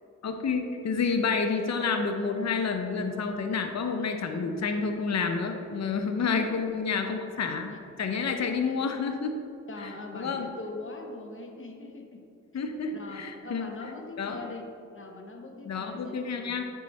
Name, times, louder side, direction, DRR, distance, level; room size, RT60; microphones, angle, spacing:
voice 1, 0.2-9.4 9.8-10.5 12.5-13.7 14.2-14.4 15.7-16.7, left 5 dB, 65° left, 5 dB, 0.6 m, -29 dB
voice 2, 5.9-6.9 9.7-12.2 12.9-14.6 14.9-16.5, left 3 dB, 45° left, 2 dB, 1.0 m, -42 dB
9.2 x 3.5 x 4.1 m, 2.6 s
cardioid pair, 45°, 29 cm